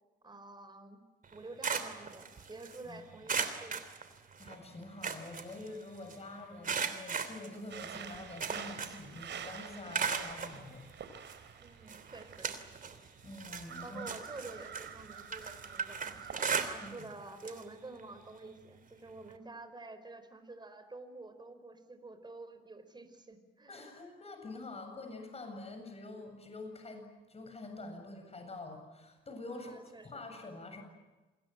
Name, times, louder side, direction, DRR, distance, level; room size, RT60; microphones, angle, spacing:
voice 1, 0.2-1.0 1.3-3.9 11.6-12.6 13.8-23.8 29.5-30.1, right 2 dB, 20° right, 9 dB, 4.7 m, -49 dB
sound 1, 1.2-2.8 3.3-4.6 4.8-6.2 6.6-9.1 9.4-10.6 11.3-11.4 11.9-13.0 13.3-17.1 17.4-17.6 18.0-18.1 19.3-19.4, right 6 dB, 45° right, 3.1 m, -37 dB
voice 2, 4.4-10.8 13.2-14.0 16.8-16.9 23.7-30.8, left 2 dB, 30° left, 5 dB, 7.7 m, -46 dB
sound 2, 7.7-16.9, right 7 dB, 65° right, 4.1 m, -48 dB
27.5 x 21.5 x 9.1 m, 1.2 s
cardioid pair, 90°, 20 cm